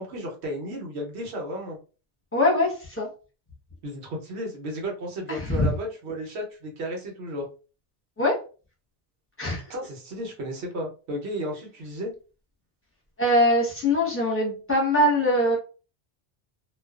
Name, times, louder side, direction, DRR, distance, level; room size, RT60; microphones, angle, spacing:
voice 1, 0.0-1.8 3.8-7.5 9.7-12.1, equal, 85° right, 0 dB, 1.1 m, -33 dB
voice 2, 2.3-3.1 5.3-5.7 8.2-8.4 9.4-9.6 13.2-15.6, left 1 dB, 15° left, -4 dB, 0.8 m, -22 dB
2.4 x 2.3 x 2.3 m, 0.35 s
omnidirectional pair, 1.1 m